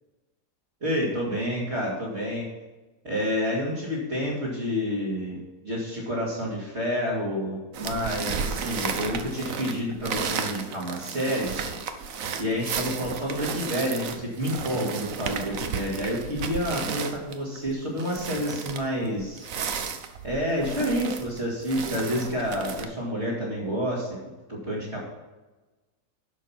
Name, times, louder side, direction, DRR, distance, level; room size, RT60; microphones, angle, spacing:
voice 1, 0.8-2.5 3.0-11.6 12.4-19.5 20.2-24.1 24.5-25.0, equal, 40° right, -8 dB, 2.8 m, -29 dB
sound 1, 7.7-22.8, right 6 dB, 60° right, 1.2 m, -33 dB
11.0 x 6.7 x 5.8 m, 1.1 s
omnidirectional pair, 1.7 m